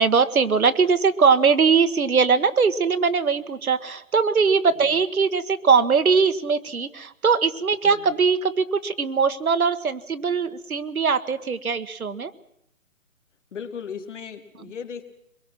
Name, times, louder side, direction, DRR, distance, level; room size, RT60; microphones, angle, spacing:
voice 1, 0.0-12.3, right 5 dB, 80° right, 10 dB, 1.6 m, -21 dB
voice 2, 13.5-15.0, left 7 dB, 55° left, 7 dB, 2.5 m, -37 dB
24.5 x 22.5 x 6.0 m, 0.78 s
figure-of-eight pair, 150°, 43 cm